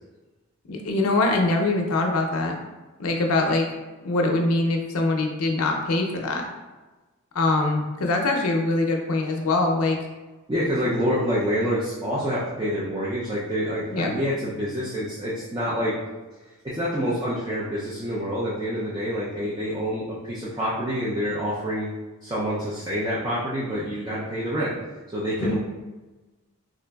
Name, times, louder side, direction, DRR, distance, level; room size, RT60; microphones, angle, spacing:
voice 1, 0.7-2.6 3.0-3.7 4.0-6.5 7.3-10.0 13.9-14.1 25.4-25.6, left 2 dB, 85° left, 2 dB, 0.5 m, -23 dB
voice 2, 10.5-16.0 16.6-21.9 22.2-24.7 25.1-25.6, equal, 20° right, -8 dB, 0.4 m, -27 dB
3.8 x 2.5 x 2.2 m, 1.2 s
head